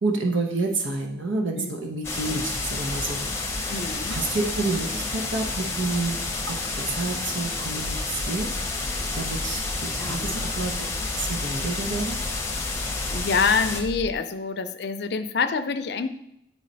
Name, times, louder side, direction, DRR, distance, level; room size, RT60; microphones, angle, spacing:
voice 1, 0.0-3.2 3.5-6.2 6.5-8.6 9.1-10.9 11.1-12.2, right 3 dB, 85° right, 2 dB, 0.8 m, -29 dB
sound 1, 2.0-13.8, left 3 dB, 15° left, 0.7 m, -30 dB
voice 2, 3.7-4.2 10.0-10.4 13.1-16.1, left 5 dB, 60° left, 10 dB, 0.5 m, -26 dB
sound 2, 7.6-14.2, left 1 dB, 70° right, 1.6 m, -37 dB
9.5 x 3.2 x 4.0 m, 0.81 s
head